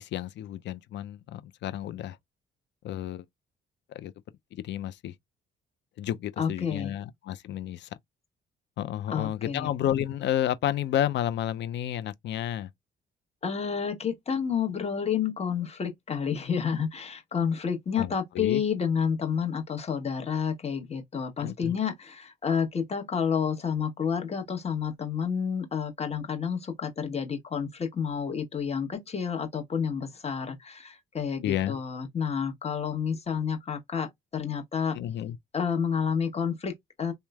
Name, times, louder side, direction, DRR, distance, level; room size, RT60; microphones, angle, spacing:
voice 1, 0.0-2.2 2.8-3.2 3.9-4.1 4.6-5.1 6.0-7.9 8.8-12.7 18.0-18.6 21.4-21.7 31.4-31.8 34.9-35.4, left 11 dB, 65° left, 0.4 m, -31 dB
voice 2, 6.4-6.9 9.1-9.7 13.4-35.0 35.5-37.1, left 7 dB, 30° left, 1.0 m, -30 dB
3.0 x 2.0 x 2.2 m
cardioid pair, 90°, 20 cm